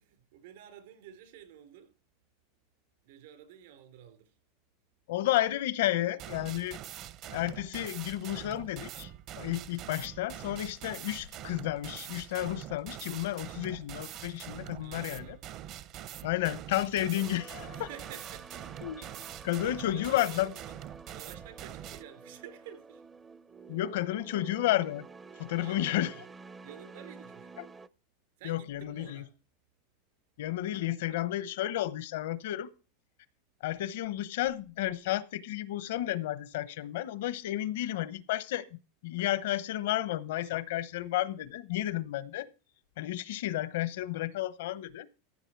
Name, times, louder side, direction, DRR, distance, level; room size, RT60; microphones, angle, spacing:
voice 1, 0.0-2.0 3.0-4.4 14.8-15.4 17.7-18.9 19.2-20.6 21.1-23.1 25.6-26.2 26.6-27.6 28.4-29.3, right 10 dB, 75° right, 4.0 m, -51 dB
voice 2, 5.1-6.8 7.3-15.4 16.2-17.9 18.8-20.5 23.7-25.1 25.4-26.1 27.6-27.7 28.4-29.2 30.4-32.7 33.6-38.6 39.0-42.5 43.0-45.1, left 14 dB, 75° left, 0.8 m, -32 dB
sound 1, 6.2-22.0, right 11 dB, 45° right, 0.7 m, -44 dB
sound 2, 17.1-27.9, right 4 dB, 15° right, 0.5 m, -50 dB
15.0 x 8.0 x 4.6 m
supercardioid pair, 135°, 0 cm